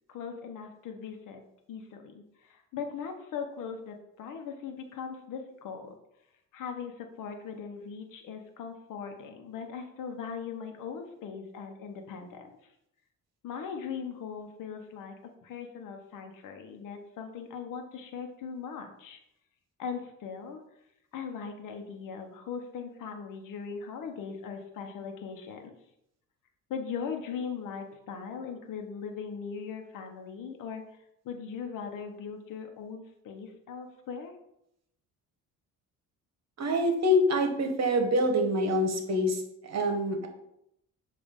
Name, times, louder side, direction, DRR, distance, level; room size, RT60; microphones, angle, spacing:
voice 1, 0.1-1.4 1.7-5.9 6.5-12.7 13.4-19.2 19.8-20.6 21.1-25.7 26.7-30.8 31.2-34.3, left 6 dB, 75° left, 5 dB, 1.0 m, -39 dB
voice 2, 36.6-40.3, left 1 dB, 55° right, 5 dB, 1.3 m, -26 dB
7.2 x 2.8 x 5.3 m, 0.78 s
cardioid pair, 80°, 32 cm